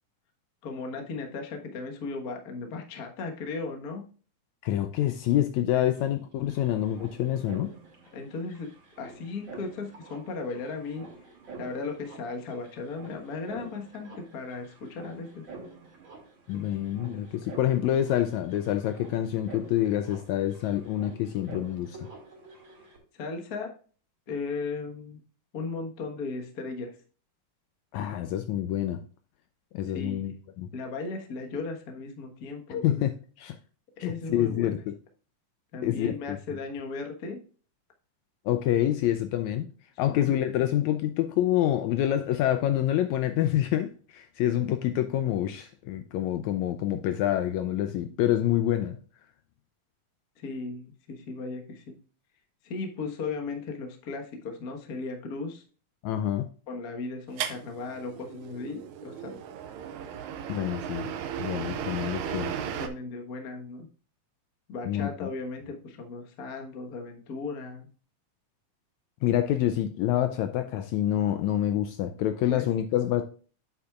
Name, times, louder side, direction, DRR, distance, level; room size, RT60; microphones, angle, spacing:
voice 1, 0.6-4.0 5.7-5.8 8.1-8.7 9.0-11.0 11.6-15.4 16.5-16.7 23.1-23.7 24.3-25.2 25.5-27.0 29.9-30.3 30.7-33.1 34.0-34.7 35.7-37.4 40.0-40.2 50.4-52.0 52.6-55.6 56.7-59.4 62.2-62.3 62.8-63.9 64.7-67.9 72.5-72.7, left 4 dB, 55° left, 1.0 m, -36 dB
voice 2, 4.6-7.7 16.5-22.1 27.9-29.0 29.7-30.7 32.7-33.1 33.4-33.6 34.0-34.9 35.8-36.4 38.4-39.7 40.0-49.0 56.0-56.5 60.5-61.1 61.4-62.5 64.8-65.3 69.2-73.2, left 12 dB, 80° left, 1.7 m, -27 dB
sound 1, 5.9-6.0 6.2-23.0, right 3 dB, 40° right, 2.7 m, -48 dB
sound 2, 57.4-62.9, right 9 dB, 75° right, 2.0 m, -36 dB
8.6 x 8.0 x 2.4 m
omnidirectional pair, 3.6 m